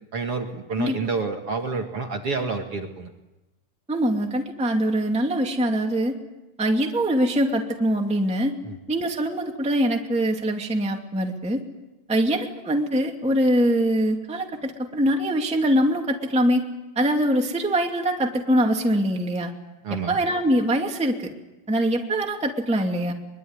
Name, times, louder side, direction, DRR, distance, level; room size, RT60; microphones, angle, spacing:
voice 1, 0.1-3.1 8.6-8.8 19.8-20.2, right 4 dB, 50° right, 3 dB, 2.4 m, -29 dB
voice 2, 3.9-6.1 6.6-8.5 8.9-11.6 12.1-16.6 17.0-19.5 20.1-21.3 21.7-23.1, right 1 dB, ahead, 2 dB, 1.9 m, -23 dB
23.5 x 23.0 x 9.9 m, 1.0 s
omnidirectional pair, 4.0 m